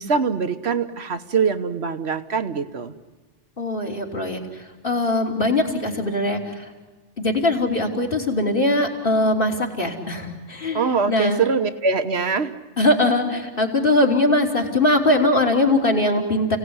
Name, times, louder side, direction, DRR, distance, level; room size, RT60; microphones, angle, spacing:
voice 1, 0.0-2.9 10.7-12.5, right 5 dB, 65° right, 10 dB, 1.5 m, -23 dB
voice 2, 3.6-4.4 4.8-6.7 7.2-11.4 12.8-16.6, left 1 dB, 50° left, 1 dB, 3.5 m, -21 dB
30.0 x 18.0 x 9.7 m, 1.3 s
omnidirectional pair, 1.2 m